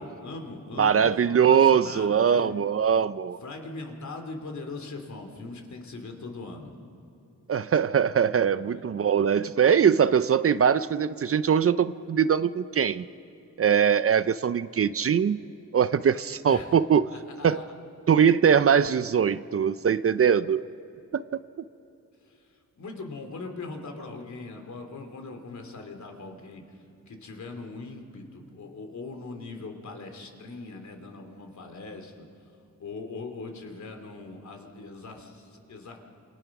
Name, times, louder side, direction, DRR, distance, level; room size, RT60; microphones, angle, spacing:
voice 1, 0.0-2.5 3.4-6.7 8.3-8.9 16.5-16.7 17.1-17.7 22.2-22.5 22.8-32.3 32.8-36.0, left 3 dB, 60° left, 4 dB, 2.9 m, -41 dB
voice 2, 0.8-3.4 7.5-13.0 13.6-15.4 15.7-17.1 17.4-17.6 18.1-20.6 21.1-21.2, right 7 dB, 45° right, 14 dB, 0.5 m, -22 dB
27.5 x 26.5 x 6.0 m, 2.8 s
wide cardioid pair, 110°, 33 cm